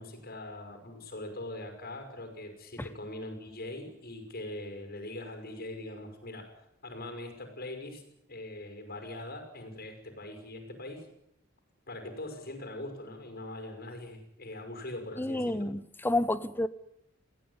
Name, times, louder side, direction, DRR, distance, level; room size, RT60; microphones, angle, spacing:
voice 1, 0.0-6.5 6.8-8.0 8.3-11.1 11.9-15.7, left 1 dB, 50° left, 6 dB, 5.7 m, -42 dB
voice 2, 15.2-16.7, left 1 dB, 10° left, 14 dB, 0.9 m, -30 dB
22.0 x 16.5 x 9.7 m, 0.82 s
head